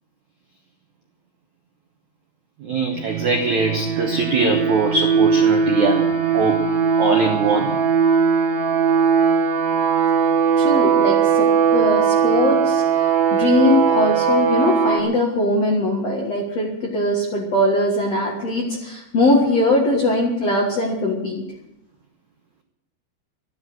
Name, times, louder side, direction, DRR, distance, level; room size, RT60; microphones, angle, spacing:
voice 1, 2.6-6.7 7.0-7.7 14.1-14.2, right 4 dB, 85° right, 3 dB, 1.6 m, -21 dB
sound 1, 3.0-15.0, right 6 dB, 65° right, 2.7 m, -19 dB
voice 2, 10.6-11.5 11.7-21.4, left 1 dB, 60° left, -1 dB, 1.7 m, -21 dB
12.5 x 9.7 x 9.5 m, 0.88 s
omnidirectional pair, 5.5 m